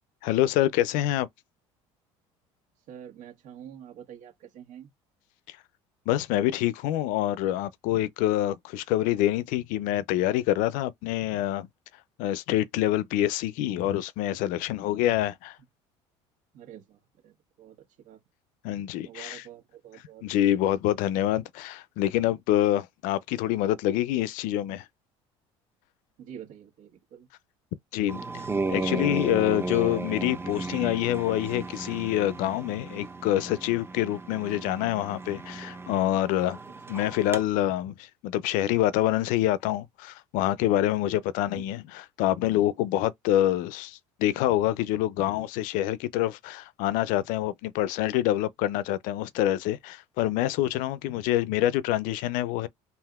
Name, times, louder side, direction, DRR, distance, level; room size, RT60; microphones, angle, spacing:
voice 1, 0.2-1.3 6.1-11.7 12.2-15.6 18.6-19.4 20.2-24.8 27.9-28.4 28.7-36.6 36.9-52.7, left 13 dB, 70° left, 0.4 m, -26 dB
voice 2, 2.9-4.9 16.5-18.2 19.0-20.2 26.2-27.3 28.9-29.3 29.9-30.0 36.9-37.0 41.5-41.6, right 9 dB, 70° right, 1.5 m, -47 dB
sound 1, 28.1-37.4, right 3 dB, 15° right, 0.7 m, -35 dB
3.4 x 2.5 x 2.3 m
supercardioid pair, 85°, 14 cm